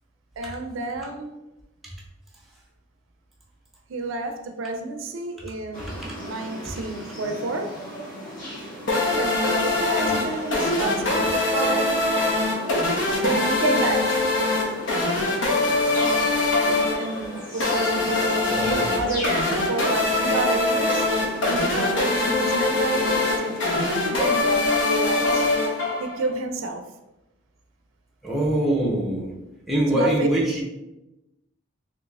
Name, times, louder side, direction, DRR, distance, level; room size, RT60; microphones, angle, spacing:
voice 1, 0.4-1.4 3.9-7.8 9.1-12.2 13.2-14.3 16.3-19.4 19.7-21.1 21.4-25.5 26.0-26.8 29.9-30.3, right 2 dB, 80° right, 6 dB, 0.4 m, -30 dB
sound 1, 5.7-23.8, equal, 45° left, 1.0 m, -38 dB
sound 2, 8.9-26.3, left 2 dB, 70° left, 0.8 m, -23 dB
voice 2, 18.5-19.0 28.2-29.3 29.7-30.6, right 1 dB, ahead, -4 dB, 0.6 m, -23 dB
3.9 x 3.0 x 2.3 m, 0.97 s
head